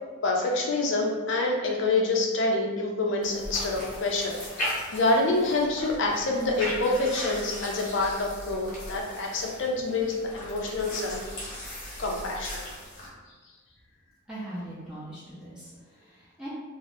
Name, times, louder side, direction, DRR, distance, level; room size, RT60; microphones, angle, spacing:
voice 1, 0.2-11.3 12.0-12.7, left 2 dB, 60° left, 0 dB, 0.5 m, -27 dB
sound 1, 3.2-13.1, left 1 dB, 40° left, 0.9 m, -38 dB
voice 2, 14.3-16.5, right 1 dB, 5° right, -11 dB, 0.6 m, -40 dB
2.7 x 2.0 x 3.2 m, 1.4 s
head